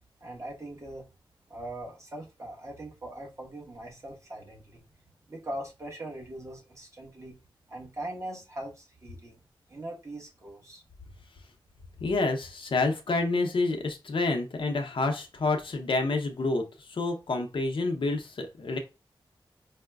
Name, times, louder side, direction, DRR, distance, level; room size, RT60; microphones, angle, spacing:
voice 1, 0.2-1.1 1.5-4.8 5.3-7.4 7.7-9.4 9.7-10.8, right 1 dB, 35° right, 1.1 m, -41 dB
voice 2, 12.0-18.8, left 3 dB, 70° left, 0.7 m, -28 dB
4.7 x 2.1 x 2.3 m
wide cardioid pair, 95°, 9 cm